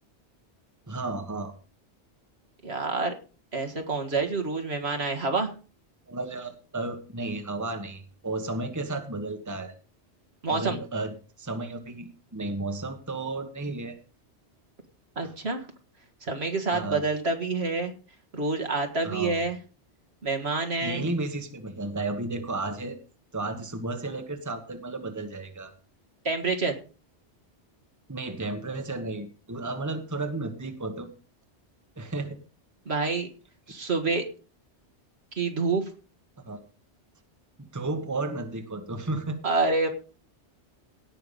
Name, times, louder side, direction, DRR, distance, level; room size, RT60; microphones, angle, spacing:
voice 1, 0.9-1.5 6.1-9.7 10.5-14.0 15.2-15.3 16.7-17.0 19.0-19.4 20.8-23.0 23.3-25.7 28.1-31.1 32.0-32.4 36.4-36.6 37.6-39.4, right 2 dB, 15° right, 6 dB, 1.3 m, -33 dB
voice 2, 2.6-3.1 3.5-5.5 10.4-10.8 15.2-15.7 16.2-17.9 18.3-19.6 20.2-21.1 26.2-26.8 32.9-33.3 33.7-34.3 35.4-35.9 39.4-39.9, right 3 dB, 65° right, 5 dB, 2.1 m, -27 dB
17.5 x 5.9 x 5.4 m, 0.35 s
omnidirectional pair, 1.2 m